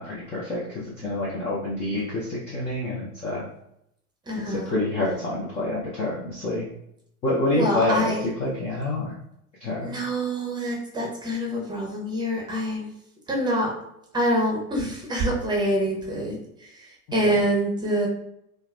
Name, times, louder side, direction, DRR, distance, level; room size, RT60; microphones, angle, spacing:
voice 1, 0.0-3.4 4.5-6.7 7.2-8.1 8.4-9.2 9.6-10.0 17.2-17.4, left 2 dB, 15° left, -6 dB, 0.3 m, -27 dB
voice 2, 4.3-4.8 7.5-8.3 9.8-12.9 13.3-13.7 14.1-18.1, right 1 dB, 10° right, -2 dB, 0.7 m, -26 dB
2.2 x 2.1 x 3.1 m, 0.77 s
hypercardioid pair, 105°, 44 cm